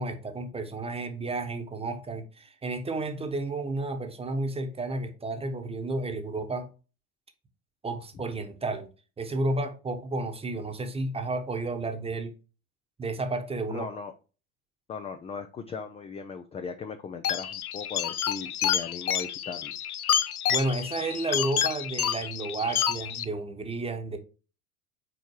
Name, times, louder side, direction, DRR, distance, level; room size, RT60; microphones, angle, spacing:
voice 1, 0.0-6.7 7.8-8.9 9.2-12.3 13.0-13.9 20.5-24.2, right 2 dB, 15° right, 1.1 m, -32 dB
voice 2, 13.7-14.1 14.9-19.8, left 5 dB, 15° left, 0.4 m, -38 dB
sound 1, 17.2-23.3, left 10 dB, 85° left, 0.6 m, -29 dB
4.7 x 4.4 x 4.6 m
figure-of-eight pair, 80°, 42 cm